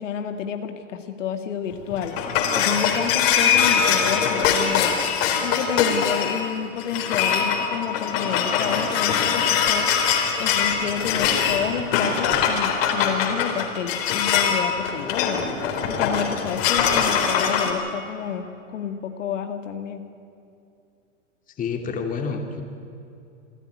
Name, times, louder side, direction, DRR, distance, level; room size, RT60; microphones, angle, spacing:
voice 1, 0.0-2.1 2.5-5.0 5.4-9.9 10.4-15.4 15.9-18.5 18.7-20.0, left 8 dB, 75° left, 6 dB, 2.1 m, -30 dB
sound 1, 1.7-17.7, left 7 dB, 50° left, 4.1 m, -22 dB
voice 2, 21.6-22.6, left 5 dB, 20° left, 4 dB, 2.6 m, -28 dB
26.5 x 13.0 x 9.7 m, 2.6 s
hypercardioid pair, 130°, 37 cm